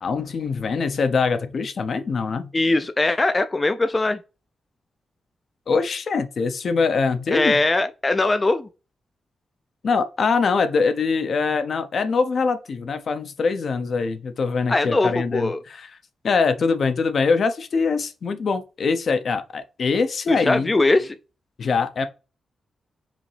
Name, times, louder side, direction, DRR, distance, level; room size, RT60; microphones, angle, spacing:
voice 1, 0.0-2.5 5.7-7.6 9.8-15.9 16.2-20.7 21.6-22.1, left 4 dB, 65° left, 0.7 m, -23 dB
voice 2, 2.5-4.2 7.3-8.7 14.7-15.6 20.3-21.2, left 2 dB, 30° left, 0.4 m, -21 dB
4.9 x 2.8 x 3.3 m
cardioid pair, 70°, 0 cm